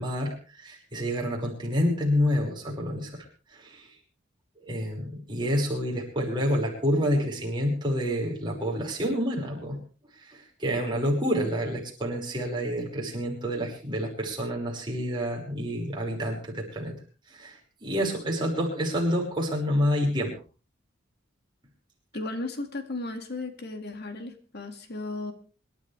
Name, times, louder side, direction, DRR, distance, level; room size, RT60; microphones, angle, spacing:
voice 1, 0.0-3.2 3.5-3.9 4.6-9.8 10.3-17.0 17.3-20.3, equal, 25° right, -2 dB, 5.6 m, -28 dB
voice 2, 22.1-25.3, left 2 dB, 55° left, 7 dB, 2.2 m, -35 dB
26.0 x 12.0 x 3.4 m, 0.36 s
head